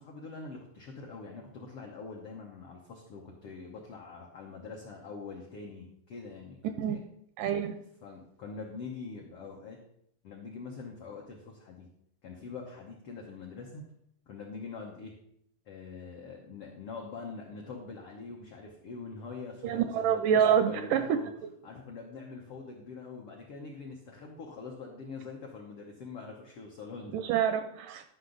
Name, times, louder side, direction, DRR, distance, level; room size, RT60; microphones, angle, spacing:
voice 1, 0.0-7.0 8.0-9.8 10.2-11.9 12.2-13.8 14.3-15.1 15.6-21.3 21.6-27.2, left 4 dB, 80° left, -1 dB, 1.2 m, -44 dB
voice 2, 7.4-7.8 19.6-21.2 27.1-28.1, right 8 dB, 80° right, 9 dB, 1.9 m, -27 dB
11.5 x 5.7 x 3.9 m, 0.72 s
omnidirectional pair, 4.1 m